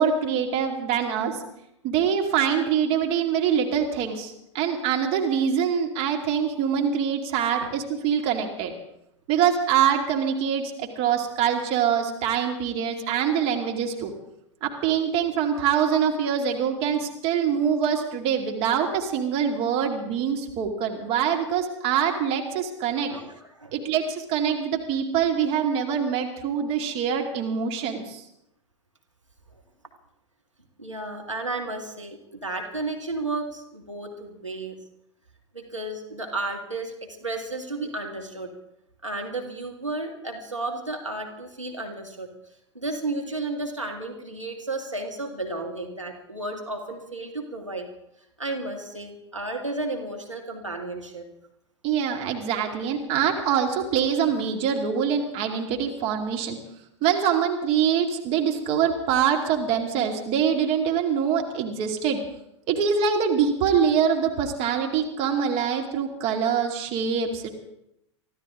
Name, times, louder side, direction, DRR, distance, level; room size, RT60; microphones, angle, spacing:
voice 1, 0.0-1.4 1.8-8.7 9.3-14.1 14.6-23.1 23.7-28.2 51.8-56.6 57.0-62.2 62.7-67.5, right 7 dB, 40° right, 3 dB, 2.4 m, -24 dB
voice 2, 23.1-23.8 30.8-34.8 35.5-36.9 37.2-38.5 39.0-42.3 42.7-47.9 48.4-51.3, right 2 dB, 90° right, 1 dB, 2.1 m, -33 dB
24.5 x 15.0 x 3.7 m, 0.80 s
figure-of-eight pair, 90°, 15 cm